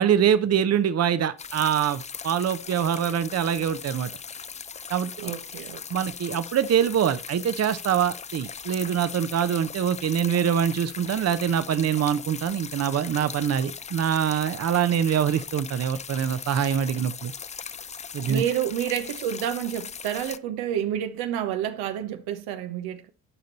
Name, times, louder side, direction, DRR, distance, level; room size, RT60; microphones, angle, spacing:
voice 1, 0.0-4.1 4.9-5.3 5.9-17.3 18.1-18.4, right 8 dB, 40° right, 0.8 m, -24 dB
sound 1, 1.4-20.4, left 6 dB, 20° left, 0.4 m, -39 dB
voice 2, 5.2-5.8 18.3-23.1, right 10 dB, 70° right, 1.0 m, -29 dB
11.0 x 5.2 x 4.2 m
hypercardioid pair, 55°, 39 cm